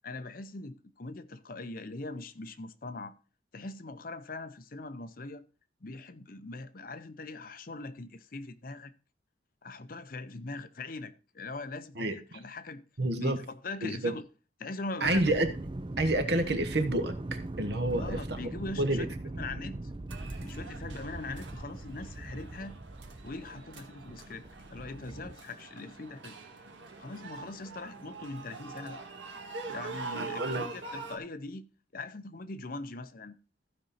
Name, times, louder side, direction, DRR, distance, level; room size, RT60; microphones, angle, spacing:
voice 1, 0.0-3.1 3.5-5.4 5.8-8.9 9.6-12.8 13.2-14.2 14.6-15.3 18.0-19.1 19.4-19.8 20.4-22.8 23.2-26.3 27.0-29.0 29.7-31.7 31.9-33.3, left 3 dB, 45° left, 0.7 m, -41 dB
voice 2, 12.0-12.4 13.0-13.4 13.8-14.1 15.0-15.5 16.0-18.4 18.8-19.1 30.1-30.7, right 1 dB, 60° right, 1.3 m, -29 dB
sound 1, 15.0-25.4, right 2 dB, 25° right, 0.5 m, -40 dB
sound 2, 20.1-31.2, right 3 dB, 75° right, 1.8 m, -44 dB
15.0 x 5.3 x 4.2 m
head